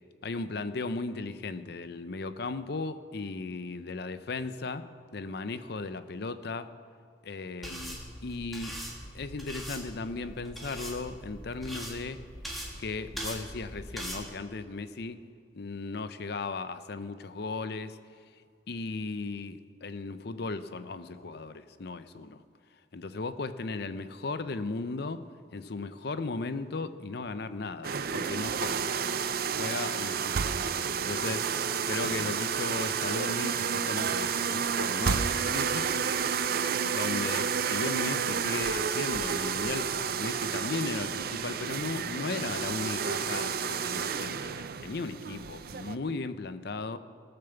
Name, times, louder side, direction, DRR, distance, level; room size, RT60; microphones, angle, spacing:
voice 1, 0.2-6.7 7.2-8.8 9.1-12.2 12.8-15.2 15.5-18.0 18.7-22.4 22.9-25.2 25.5-29.2 29.6-31.4 31.9-36.0 36.8-39.9 40.2-47.0, left 3 dB, 60° left, 11 dB, 0.6 m, -36 dB
sound 1, 7.6-14.2, equal, ahead, 2.0 m, -41 dB
sound 2, 27.8-46.0, right 6 dB, 55° right, 0.5 m, -30 dB
18.0 x 6.8 x 7.0 m, 2.2 s
head